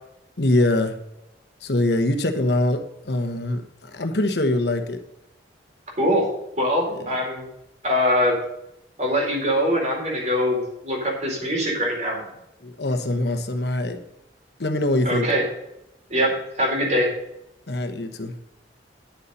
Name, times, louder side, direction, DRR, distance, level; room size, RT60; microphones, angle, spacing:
voice 1, 0.4-0.9 1.6-2.8 3.0-3.6 3.9-5.0 6.9-7.1 12.6-14.0 14.6-15.3 17.7-18.3, left 1 dB, 70° left, 6 dB, 1.2 m, -23 dB
voice 2, 6.6-7.5 7.8-8.4 9.0-12.2 15.0-15.4 16.1-17.1, equal, 40° right, -1 dB, 4.1 m, -22 dB
10.5 x 7.0 x 5.3 m, 0.83 s
head